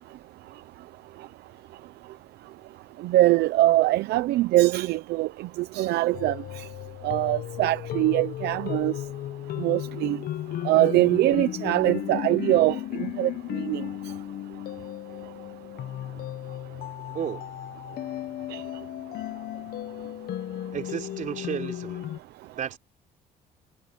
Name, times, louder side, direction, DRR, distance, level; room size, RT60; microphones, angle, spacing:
voice 1, 3.0-5.3 5.7-6.3 7.0-8.9 9.6-10.2 10.6-13.3 13.7-13.8, right 16 dB, 80° right, 0.8 m, -22 dB
sound 1, 6.1-22.2, left 13 dB, 65° left, 0.9 m, -35 dB
voice 2, 20.7-22.1 22.5-22.8, right 8 dB, 50° right, 3.5 m, -33 dB
cardioid pair, 110°, 17 cm